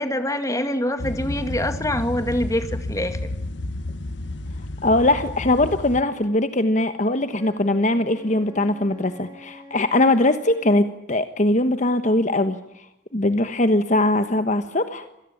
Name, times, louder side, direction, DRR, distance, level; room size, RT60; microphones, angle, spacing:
voice 1, 0.0-3.3, left 1 dB, 15° left, 8 dB, 2.3 m, -25 dB
sound 1, 1.0-6.0, left 1 dB, 70° left, 1.3 m, -31 dB
voice 2, 4.8-12.8 13.1-15.0, left 1 dB, 40° left, 9 dB, 1.2 m, -21 dB
Wind instrument woodwind instrument, 7.3-10.8, left 1 dB, 25° right, 7.5 m, -45 dB
27.0 x 18.0 x 9.9 m, 0.86 s
head